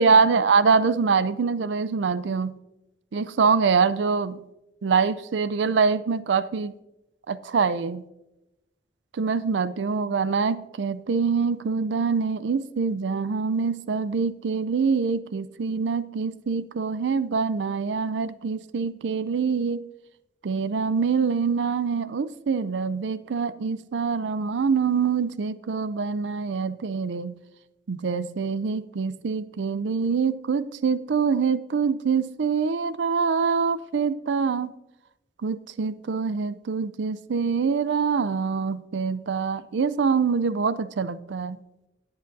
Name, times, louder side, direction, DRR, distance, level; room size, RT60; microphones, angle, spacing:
voice 1, 0.0-2.5 3.1-4.4 4.8-6.7 7.3-8.0 9.1-19.8 20.4-27.4 27.9-34.7 35.4-41.6, right 5 dB, 80° right, 15 dB, 0.5 m, -24 dB
19.5 x 7.9 x 2.6 m, 0.92 s
head